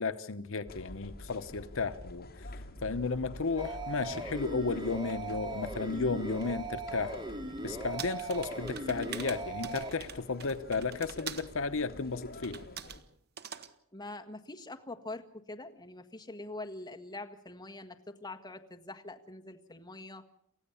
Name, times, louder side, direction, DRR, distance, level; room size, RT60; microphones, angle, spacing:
voice 1, 0.0-2.3 2.8-7.2 7.6-12.6, left 4 dB, 65° left, 10 dB, 0.9 m, -33 dB
sound 1, 0.7-13.0, left 1 dB, 45° left, 2.6 m, -48 dB
sound 2, 3.6-9.9, right 2 dB, 20° right, 2.9 m, -39 dB
sound 3, 8.0-11.5 12.4-13.0 13.4-13.7, right 8 dB, 50° right, 1.3 m, -44 dB
voice 2, 13.9-20.2, left 2 dB, 20° left, 5 dB, 1.6 m, -44 dB
29.0 x 15.0 x 7.1 m, 0.69 s
head